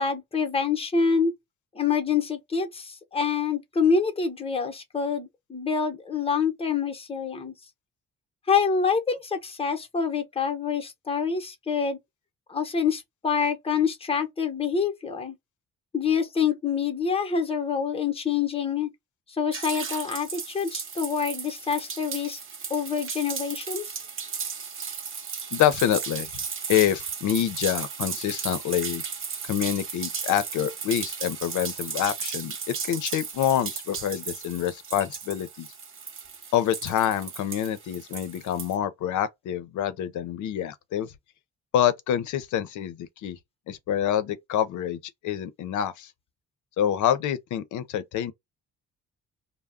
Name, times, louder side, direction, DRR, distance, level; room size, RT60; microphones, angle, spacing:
voice 1, 0.0-1.3 1.7-7.5 8.5-12.0 12.5-15.4 15.9-18.9 19.4-22.4 22.7-23.9, left 6 dB, 20° left, 0.8 m, -26 dB
sound 1, 19.5-38.8, right 6 dB, 45° right, 0.8 m, -35 dB
voice 2, 25.5-26.3 26.7-29.0 29.4-35.7 36.5-41.1 41.7-43.4 43.7-46.1 46.8-48.3, left 10 dB, 75° left, 0.6 m, -26 dB
2.3 x 2.0 x 3.5 m
cardioid pair, 90°, 30 cm